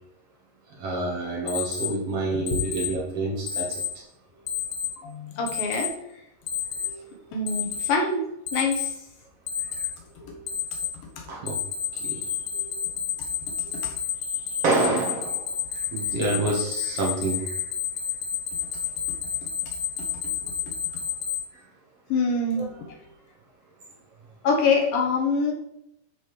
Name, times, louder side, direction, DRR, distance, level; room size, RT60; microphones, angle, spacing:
voice 1, 0.8-3.7 9.6-9.9 11.3-11.6 11.9-12.3 14.6-17.6 21.5-21.6 22.5-22.6, right 2 dB, 70° right, -3 dB, 1.4 m, -28 dB
Alarm, 1.5-1.9 2.5-2.9 3.5-3.9 4.5-4.9 5.5-5.9 6.5-6.9 7.5-7.9 8.5-8.9 9.5-9.9 10.5-10.9 11.5-21.4, left 8 dB, 90° left, 3.4 m, -29 dB
voice 2, 2.3-2.6 5.0-6.0 6.8-7.0 7.3-8.2 8.5-8.9 10.2-10.4 12.5-12.7 13.6-13.9 19.6-19.7 20.4-20.5 22.1-22.9 24.4-25.5, left 4 dB, 65° left, 1 dB, 2.6 m, -26 dB
13.0 x 5.1 x 3.2 m, 0.82 s
omnidirectional pair, 4.9 m